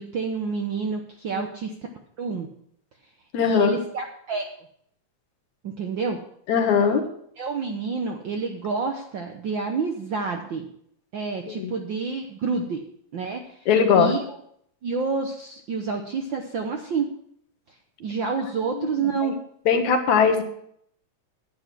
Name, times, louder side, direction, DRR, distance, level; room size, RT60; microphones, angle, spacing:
voice 1, 0.0-1.7 2.2-2.5 3.4-4.4 5.6-6.2 7.4-10.7 11.1-12.8 13.1-13.6 13.9-14.2 14.8-17.1 18.0-19.4, right 5 dB, 65° right, 3 dB, 1.2 m, -28 dB
voice 2, 3.3-3.8 6.5-7.0 11.5-11.7 13.7-14.1 18.7-19.3 19.7-20.4, left 6 dB, 75° left, 6 dB, 2.8 m, -20 dB
10.5 x 9.6 x 6.0 m, 0.67 s
omnidirectional pair, 3.3 m